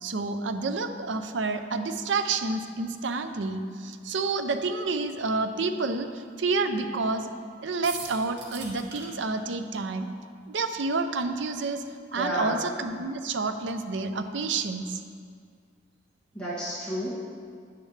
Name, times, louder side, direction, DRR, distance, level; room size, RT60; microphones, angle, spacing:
voice 1, 0.0-7.3 7.6-10.1 10.5-11.8 12.1-15.0, right 3 dB, 80° right, 8 dB, 0.6 m, -29 dB
sound 1, 7.8-9.0, right 4 dB, 60° right, 2.2 m, -39 dB
voice 2, 12.2-12.6 16.3-17.1, right 1 dB, 5° left, -12 dB, 2.3 m, -31 dB
10.0 x 9.5 x 3.3 m, 2.1 s
head